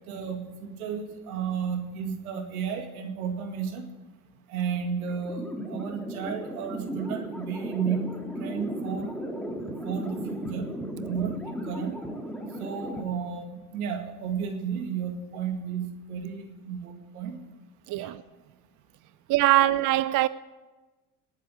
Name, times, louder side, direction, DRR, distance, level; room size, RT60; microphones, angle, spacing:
voice 1, 0.1-3.9 4.5-9.1 9.8-10.7 11.1-12.0 12.6-17.4 17.9-18.1, right 7 dB, 90° right, 2.1 m, -33 dB
sound 1, 5.1-13.0, equal, ahead, 2.5 m, -35 dB
voice 2, 17.9-18.2 19.3-20.3, right 16 dB, 50° right, 0.5 m, -22 dB
19.0 x 8.2 x 9.0 m
hypercardioid pair, 80°, 43 cm